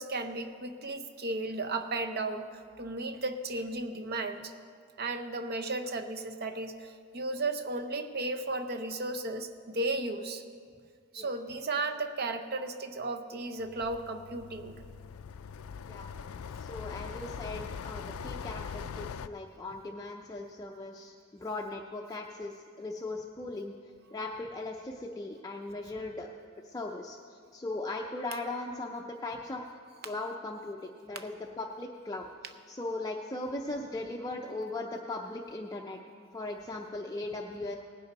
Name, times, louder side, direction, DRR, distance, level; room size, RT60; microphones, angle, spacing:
voice 1, 0.0-2.5 2.8-4.5 5.0-10.4 11.1-14.8 31.1-31.2, right 2 dB, 45° right, 7 dB, 0.7 m, -34 dB
sound 1, 13.6-19.3, left 6 dB, 75° left, 0.4 m, -42 dB
voice 2, 16.6-23.7 24.1-26.3 26.6-29.6 30.0-32.3 32.7-36.0 36.3-37.8, left 2 dB, 15° left, 0 dB, 0.5 m, -38 dB
18.5 x 10.5 x 4.1 m, 2.2 s
head